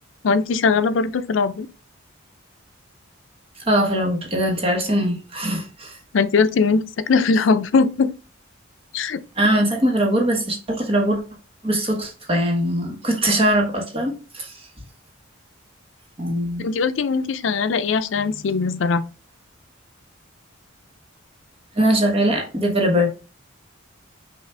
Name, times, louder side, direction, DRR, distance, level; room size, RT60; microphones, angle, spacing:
voice 1, 0.2-1.7 6.1-8.1 8.9-9.2 16.6-19.0, left 4 dB, 70° left, 0.4 m, -20 dB
voice 2, 3.7-6.0 9.4-11.2 11.6-14.6 16.2-16.7 18.2-18.6 21.7-23.1, equal, 30° right, 1.1 m, -21 dB
5.6 x 2.5 x 3.3 m
head